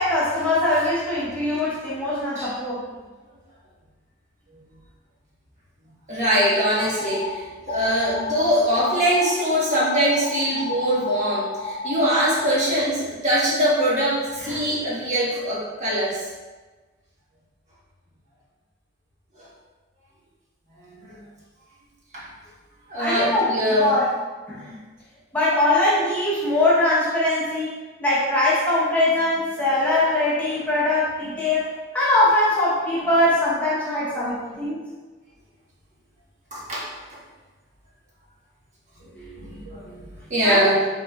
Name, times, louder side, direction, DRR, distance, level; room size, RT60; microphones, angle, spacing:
voice 1, 0.0-2.8 14.4-14.6 23.0-24.1 24.5-24.8 25.3-34.8 40.4-40.8, left 1 dB, 10° left, -8 dB, 1.0 m, -22 dB
voice 2, 6.1-7.3 7.7-16.2 21.1-21.2 22.1-22.2 22.9-23.9 34.1-34.6 36.5-36.9 39.1-40.0 40.3-40.8, equal, 40° right, -7 dB, 1.3 m, -22 dB
sound 1, 6.4-7.3 7.7-8.4 8.7-9.3 9.7-12.4, left 4 dB, 40° left, 0.7 m, -32 dB
5.7 x 3.9 x 2.4 m, 1.3 s
head